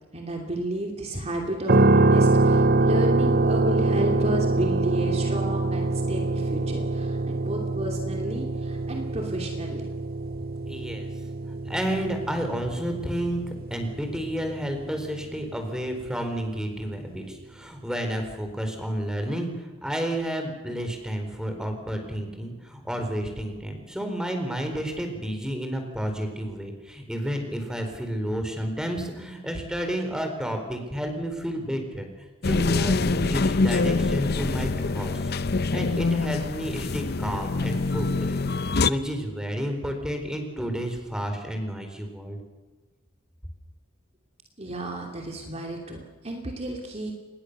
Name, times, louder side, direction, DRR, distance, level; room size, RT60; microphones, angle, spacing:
voice 1, 0.1-9.9 44.6-47.1, right 1 dB, 30° right, 1 dB, 2.8 m, -32 dB
sound 1, 1.7-15.7, right 2 dB, 45° right, 0.8 m, -24 dB
voice 2, 10.7-11.1 11.7-13.4 13.7-35.3 35.7-42.4, equal, 5° right, 5 dB, 4.2 m, -31 dB
sound 2, 32.4-38.9, left 3 dB, 50° left, 0.8 m, -25 dB
26.0 x 20.5 x 6.8 m, 1.3 s
head